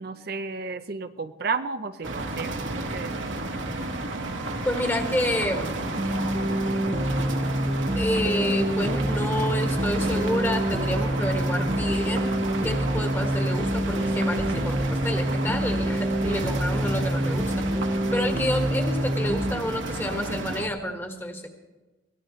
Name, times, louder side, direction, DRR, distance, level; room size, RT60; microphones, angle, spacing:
voice 1, 0.0-3.3, right 4 dB, 50° right, 8 dB, 0.6 m, -32 dB
sound 1, 2.0-20.7, right 2 dB, 75° right, 1.7 m, -32 dB
sound 2, 3.8-13.7, equal, 70° left, 6.3 m, -45 dB
voice 2, 4.6-5.7 7.9-12.3 12.6-21.5, left 1 dB, 10° left, 3 dB, 1.6 m, -29 dB
sound 3, 6.0-19.6, right 1 dB, 25° right, 0.9 m, -27 dB
23.0 x 17.0 x 3.1 m, 1.2 s
head